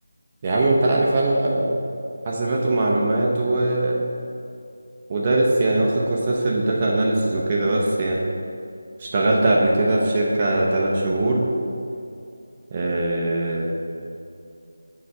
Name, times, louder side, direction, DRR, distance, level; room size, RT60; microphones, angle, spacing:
voice 1, 0.4-1.8 2.3-4.0 5.1-8.2 9.0-11.5 12.7-13.7, right 2 dB, 25° right, -3 dB, 0.7 m, -21 dB
6.2 x 4.7 x 6.5 m, 2.4 s
figure-of-eight pair, 160°, 0 cm